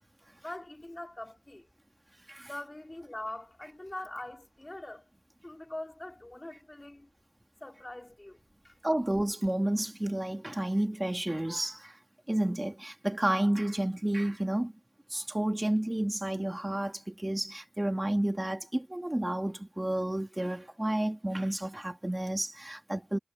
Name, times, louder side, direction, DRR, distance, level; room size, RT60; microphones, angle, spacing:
voice 1, 0.4-1.7 2.4-5.1 5.4-7.1 7.6-8.4 8.6-8.8, left 1 dB, 20° left, 3.3 m, -43 dB
voice 2, 8.8-12.0 12.3-14.7 15.1-23.2, right 1 dB, 15° right, 1.7 m, -31 dB
wide cardioid pair, 60°, 0 cm